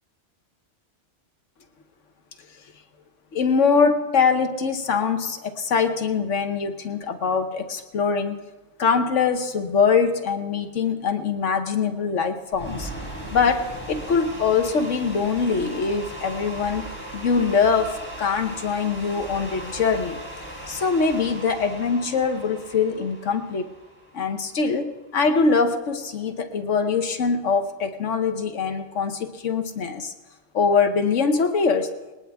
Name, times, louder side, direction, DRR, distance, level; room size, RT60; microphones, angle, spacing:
voice 1, 3.3-8.4 8.8-12.9 13.3-16.8 17.1-20.2 20.7-23.7 24.1-30.1 30.5-31.9, left 5 dB, 85° left, 7 dB, 1.4 m, -23 dB
sound 1, 12.5-24.7, right 1 dB, 10° left, 3.8 m, -38 dB
20.0 x 19.0 x 3.5 m, 1.1 s
omnidirectional pair, 1.2 m